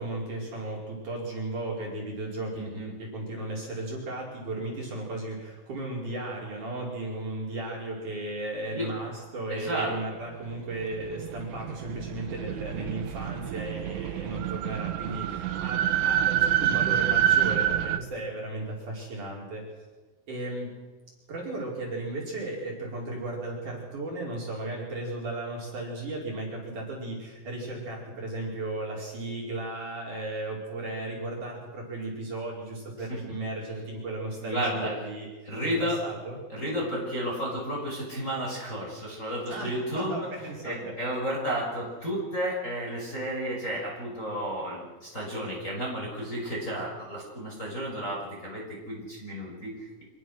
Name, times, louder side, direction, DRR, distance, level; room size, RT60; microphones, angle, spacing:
voice 1, 0.0-19.7 20.3-20.7 21.3-35.3 35.6-36.4 39.5-40.9, right 2 dB, 40° right, -3 dB, 5.8 m, -35 dB
voice 2, 2.5-2.9 8.7-8.9 9.5-9.9 33.1-33.2 34.4-34.9 35.5-36.0 36.5-40.3 40.6-50.0, equal, 15° left, -3 dB, 5.9 m, -32 dB
sound 1, 10.5-18.0, right 11 dB, 75° right, 3.3 m, -27 dB
26.0 x 21.5 x 6.4 m, 1.3 s
omnidirectional pair, 5.8 m